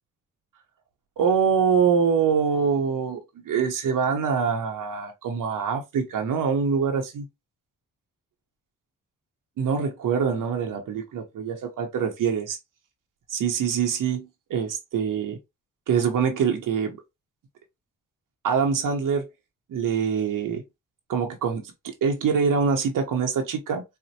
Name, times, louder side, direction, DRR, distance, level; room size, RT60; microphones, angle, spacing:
voice 1, 1.2-7.3 9.6-12.6 13.3-15.4 15.9-17.0 18.4-19.3 19.7-20.6 21.1-23.8, right 6 dB, 75° right, 0.8 m, -24 dB
4.2 x 2.1 x 2.7 m
cardioid pair, 90°, 32 cm